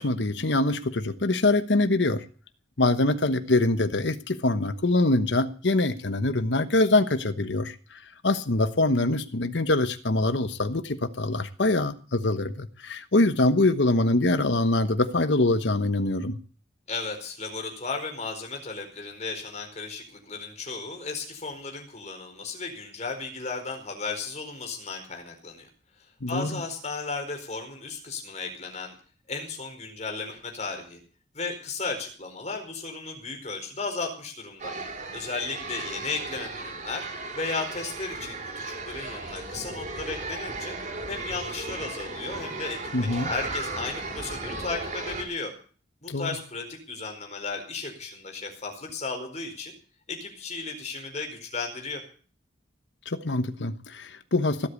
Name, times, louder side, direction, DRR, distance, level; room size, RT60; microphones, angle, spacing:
voice 1, 0.0-2.2 2.8-16.4 26.2-26.6 42.9-43.3 46.1-46.3 53.1-54.7, left 2 dB, 80° left, 10 dB, 1.1 m, -24 dB
voice 2, 16.9-25.7 26.3-29.0 29.3-31.0 31.3-34.7 35.1-37.1 37.3-40.8 41.1-45.5 46.0-49.7 50.1-52.0, left 4 dB, 40° left, 4 dB, 4.7 m, -35 dB
sound 1, 34.6-45.2, right 3 dB, 45° right, 4.7 m, -35 dB
18.0 x 8.5 x 8.3 m, 0.41 s
head